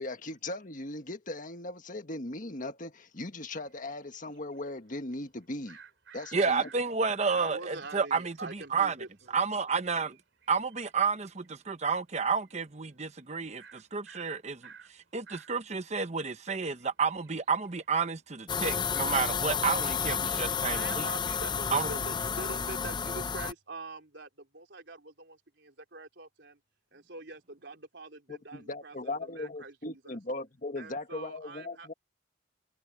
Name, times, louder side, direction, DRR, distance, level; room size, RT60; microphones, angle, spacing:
voice 1, 0.0-5.8 6.1-6.7 28.5-31.9, left 2 dB, 45° left, 1.7 m, -38 dB
sound 1, 3.6-7.8 8.2-8.3 8.5-11.6 11.9-12.8 13.0-13.1 13.6-18.3, right 6 dB, 85° right, 3.5 m, -56 dB
voice 2, 6.3-8.9 9.3-10.2 10.5-14.7 15.1-21.1 21.7-21.9, right 5 dB, 35° right, 1.0 m, -30 dB
voice 3, 7.3-9.3 20.6-26.6 26.9-30.2 30.8-31.9, right 3 dB, 65° right, 4.0 m, -44 dB
sound 2, 18.5-23.5, left 6 dB, 25° left, 0.5 m, -31 dB
head